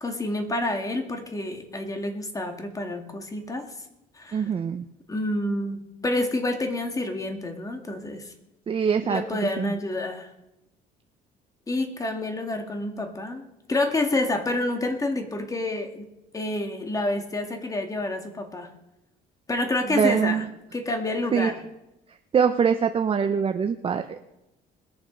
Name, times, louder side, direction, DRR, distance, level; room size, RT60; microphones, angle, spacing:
voice 1, 0.0-3.7 4.2-4.5 5.1-8.3 9.0-10.3 11.7-13.4 13.7-16.1 16.3-18.7 19.5-20.4 20.7-21.6, left 2 dB, 20° left, 5 dB, 2.1 m, -28 dB
voice 2, 4.3-4.8 8.7-9.2 9.6-9.7 19.9-20.5 21.3-21.5 22.3-24.2, right 7 dB, 35° right, 7 dB, 0.7 m, -23 dB
20.5 x 7.1 x 5.2 m, 0.92 s
cardioid pair, 110°, 17 cm